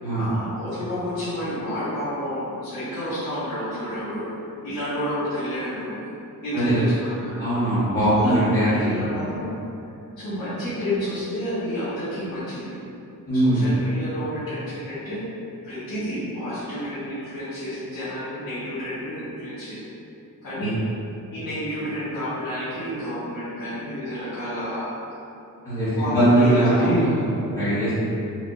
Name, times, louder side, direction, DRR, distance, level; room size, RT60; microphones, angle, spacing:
voice 1, 0.1-4.3 4.6-6.1 6.4-7.5 8.1-9.5 10.2-12.8 13.3-15.2 15.6-19.8 20.4-20.8 21.3-25.0 25.8-26.9, equal, 70° left, -15 dB, 1.3 m, -30 dB
voice 2, 7.4-9.1 13.3-13.6 20.6-20.7 25.6-27.9, right 1 dB, 25° left, -18 dB, 1.2 m, -21 dB
4.7 x 2.6 x 2.3 m, 2.8 s
wide cardioid pair, 175°, 35 cm